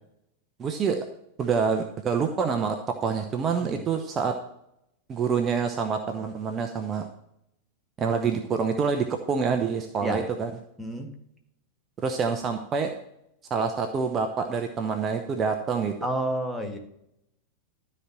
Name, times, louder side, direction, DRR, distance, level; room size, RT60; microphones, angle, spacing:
voice 1, 0.6-1.0 1.4-2.8 3.0-4.3 5.1-7.1 8.0-10.5 12.0-12.9 13.5-15.9, right 5 dB, 25° right, 5 dB, 0.8 m, -26 dB
voice 2, 10.8-11.1 16.0-16.8, right 1 dB, ahead, 2 dB, 1.6 m, -30 dB
13.0 x 4.4 x 7.3 m, 0.79 s
figure-of-eight pair, 90°, 0 cm